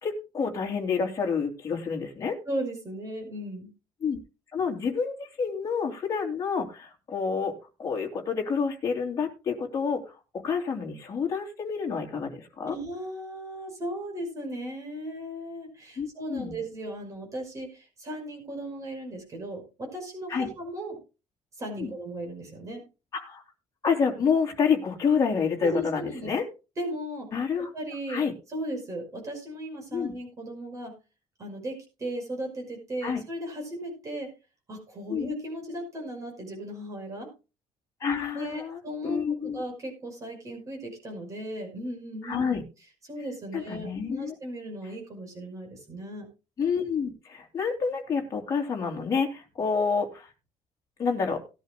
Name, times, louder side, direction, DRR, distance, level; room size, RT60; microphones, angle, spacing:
voice 1, 0.0-2.4 4.0-4.2 4.5-12.8 16.0-16.5 20.3-20.5 21.8-21.9 23.1-23.4 23.8-26.4 27.3-27.7 28.1-28.3 29.9-30.1 33.0-33.2 35.1-35.3 38.0-39.6 42.2-42.6 43.5-44.3 46.6-50.3 51.0-51.4, left 5 dB, 30° left, 1 dB, 2.9 m, -28 dB
voice 2, 2.5-3.7 12.7-21.0 21.6-22.8 25.6-26.3 26.8-27.3 27.7-28.2 28.5-30.9 31.4-34.3 34.7-37.3 38.3-39.2 39.5-42.5 43.0-46.3, right 1 dB, 25° right, 2 dB, 5.6 m, -36 dB
18.5 x 11.0 x 2.2 m, 0.30 s
cardioid pair, 180°, 12 cm